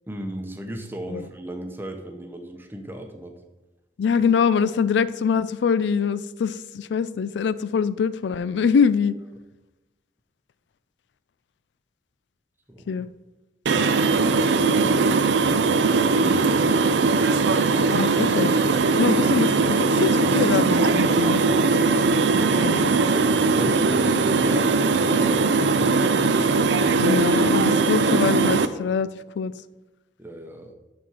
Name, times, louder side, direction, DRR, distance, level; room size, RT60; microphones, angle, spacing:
voice 1, 0.1-3.4 12.7-13.1 16.0-16.9 22.3-26.0 30.2-30.7, right 1 dB, 10° right, 5 dB, 0.9 m, -36 dB
voice 2, 4.0-9.1 12.9-13.1 17.9-18.5 18.9-21.4 22.6-22.9 27.0-29.1 29.4-29.5, left 6 dB, 85° left, 16 dB, 0.3 m, -23 dB
sound 1, 13.7-28.7, right 3 dB, 90° right, 0.5 m, -20 dB
11.5 x 4.3 x 4.8 m, 1.1 s
head